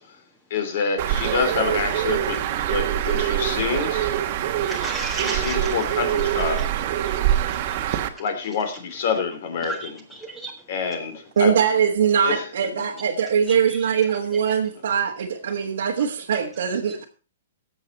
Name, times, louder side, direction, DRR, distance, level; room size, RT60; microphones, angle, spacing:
voice 1, 0.5-4.1 4.5-4.6 5.1-6.7 7.1-7.2 8.2-10.0 10.7-11.5 12.2-12.5, left 5 dB, 55° left, 8 dB, 2.9 m, -27 dB
Bird, 1.0-8.1, right 11 dB, 45° right, 1.3 m, -24 dB
voice 2, 4.6-5.7 6.6-6.7 7.0-7.1 7.5-7.6 9.6-10.5 13.5-13.8 16.9-17.0, right 2 dB, 5° left, 2 dB, 1.6 m, -34 dB
voice 3, 11.4-17.0, right 7 dB, 70° right, -1 dB, 1.4 m, -22 dB
17.5 x 7.2 x 4.1 m, 0.37 s
hypercardioid pair, 150°, 0 cm